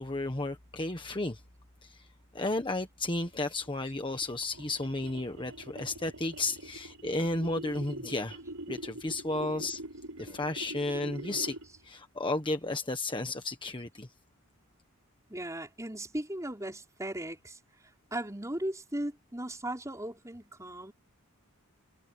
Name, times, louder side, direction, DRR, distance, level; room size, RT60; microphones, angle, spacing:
voice 1, 0.0-1.4 1.8-2.1 2.3-8.4 8.7-9.8 10.2-11.6 11.8-14.1, left 2 dB, 20° left, 1.4 m, -33 dB
sound 1, 3.2-11.9, right 1 dB, 85° right, 7.2 m, -44 dB
voice 2, 15.3-17.6 18.1-20.9, right 1 dB, 15° right, 5.3 m, -37 dB
head